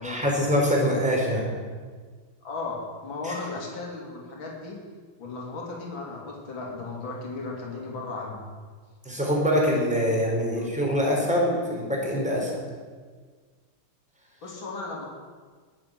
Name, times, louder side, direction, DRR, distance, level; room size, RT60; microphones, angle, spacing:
voice 1, 0.0-1.4 3.2-3.3 9.1-12.5, equal, 5° right, -2 dB, 3.8 m, -24 dB
voice 2, 2.4-4.8 5.2-8.4 10.0-10.2 10.6-10.7 14.4-15.1, left 3 dB, 60° left, -2 dB, 3.6 m, -36 dB
21.5 x 7.6 x 7.7 m, 1.5 s
omnidirectional pair, 2.4 m